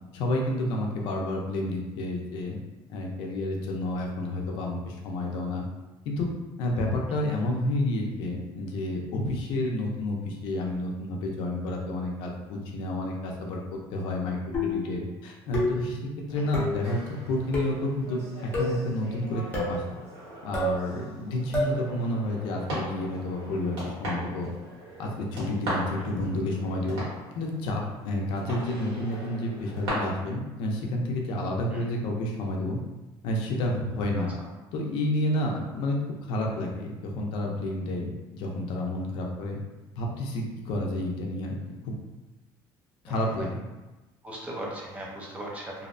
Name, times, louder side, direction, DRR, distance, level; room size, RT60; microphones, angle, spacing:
voice 1, 0.1-2.6 2.9-5.7 6.1-6.3 6.6-13.6 13.9-14.4 14.6-16.0 16.3-19.8 20.4-24.5 25.0-27.0 27.3-32.8 33.2-34.3 34.7-36.0 36.3-39.6 40.0-41.6 41.8-42.0 43.0-43.6, left 1 dB, 70° left, 0 dB, 0.5 m, -30 dB
sound 1, 14.5-14.9 15.5-15.9 16.5-16.8 17.5-17.8 18.5-18.9 19.5-19.8 20.5-20.8 21.5-21.8, left 1 dB, 20° left, 0.7 m, -28 dB
sound 2, 16.3-29.9, equal, 85° right, 1.3 m, -40 dB
voice 2, 44.2-45.9, right 1 dB, 15° right, -3 dB, 0.5 m, -38 dB
2.6 x 2.0 x 2.5 m, 1.1 s
cardioid pair, 165°, 9 cm